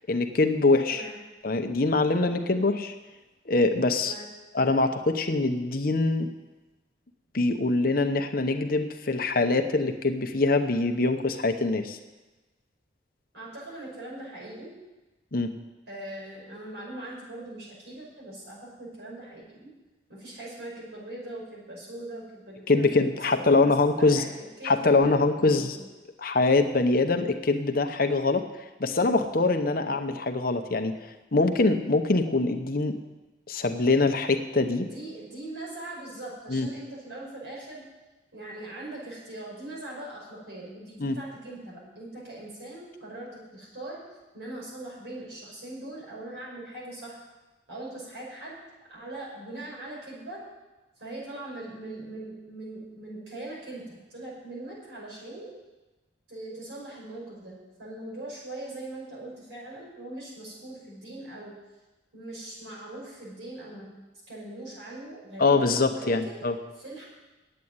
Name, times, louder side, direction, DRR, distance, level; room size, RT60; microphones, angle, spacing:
voice 1, 0.1-1.0 1.4-2.9 3.5-4.1 4.5-6.3 7.3-12.0 15.3-15.5 22.7-24.2 24.6-25.8 26.2-28.5 28.8-30.9 31.3-33.0 33.5-34.9 36.5-36.7 41.0-41.2 65.4-66.6, left 3 dB, 50° left, 6 dB, 0.9 m, -24 dB
voice 2, 13.3-14.7 15.9-19.7 20.1-22.9 23.1-23.7 24.0-25.8 34.7-37.8 38.3-44.0 44.3-47.2 47.7-48.6 48.9-50.4 51.0-55.5 56.3-61.5 62.1-63.9 64.3-66.5 66.8-67.1, right 2 dB, 75° right, -4 dB, 5.8 m, -41 dB
9.3 x 8.7 x 9.6 m, 1.1 s
head